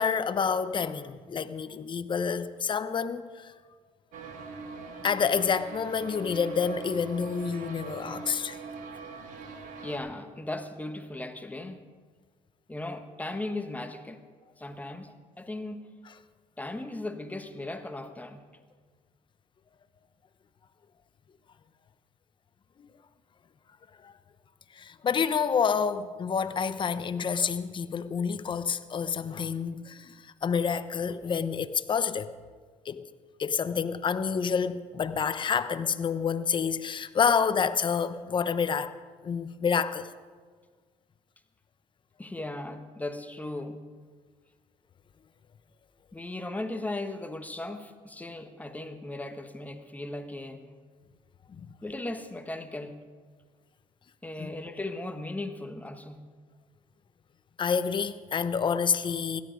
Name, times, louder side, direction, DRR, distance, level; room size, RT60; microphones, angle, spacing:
voice 1, 0.0-3.5 5.0-8.6 24.0-24.1 24.8-30.1 30.4-32.3 32.8-33.0 33.4-38.9 39.2-40.1 51.5-51.6 54.4-54.5 57.6-59.4, left 6 dB, 35° left, 0.9 m, -28 dB
sound 1, 4.1-10.0, right 4 dB, 65° right, 2.2 m, -42 dB
voice 2, 9.8-11.8 12.7-14.2 14.6-15.9 16.6-18.4 42.2-43.9 46.1-50.6 51.8-53.1 54.2-56.3, left 2 dB, 10° left, 1.3 m, -37 dB
16.5 x 12.5 x 5.2 m
supercardioid pair, 85°, 14 cm